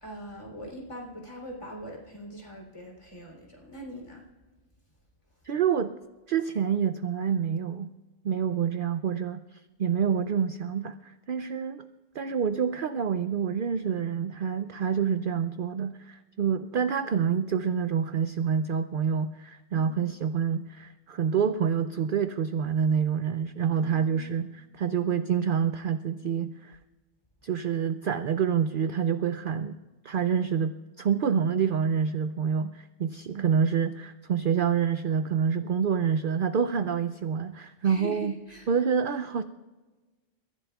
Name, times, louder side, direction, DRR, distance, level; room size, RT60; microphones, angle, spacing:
voice 1, 0.0-4.2 19.7-20.0 23.7-24.4 37.8-38.7, equal, 25° left, -1 dB, 3.4 m, -42 dB
voice 2, 5.4-5.9 6.3-7.9 8.2-9.4 9.8-11.9 12.1-26.8 27.4-29.8 30.0-38.4 38.7-39.4, right 7 dB, 60° right, 10 dB, 0.6 m, -27 dB
30.0 x 15.0 x 2.4 m, 1.2 s
omnidirectional pair, 1.3 m